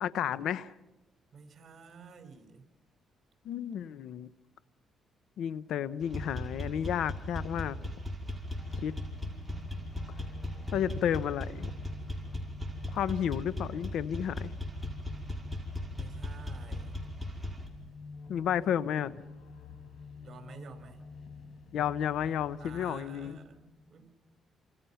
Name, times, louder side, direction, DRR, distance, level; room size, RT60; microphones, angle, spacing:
voice 1, 0.0-0.7 3.4-4.3 5.4-7.8 8.8-9.0 10.7-11.7 12.9-14.5 18.3-19.2 21.7-23.4, left 9 dB, 75° left, 16 dB, 1.0 m, -32 dB
voice 2, 1.3-2.6 15.9-16.9 20.2-21.0 22.6-24.0, right 5 dB, 50° right, 6 dB, 4.7 m, -51 dB
sound 1, 6.0-17.7, left 1 dB, 5° right, 5.8 m, -38 dB
sound 2, 8.6-23.5, left 5 dB, 55° left, 5.1 m, -49 dB
29.5 x 27.0 x 5.8 m, 1.1 s
cardioid pair, 90°, 0 cm